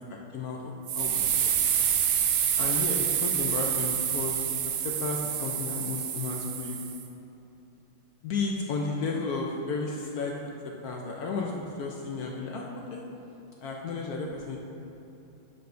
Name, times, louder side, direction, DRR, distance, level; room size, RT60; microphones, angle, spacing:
voice 1, 0.1-1.5 2.6-4.5 4.8-6.8 8.2-10.3 10.8-13.0 13.6-14.6, left 4 dB, 75° left, -1 dB, 0.8 m, -33 dB
sound 1, 0.9-7.0, right 9 dB, 90° right, 1.4 m, -27 dB
9.8 x 6.8 x 2.6 m, 2.9 s
omnidirectional pair, 2.2 m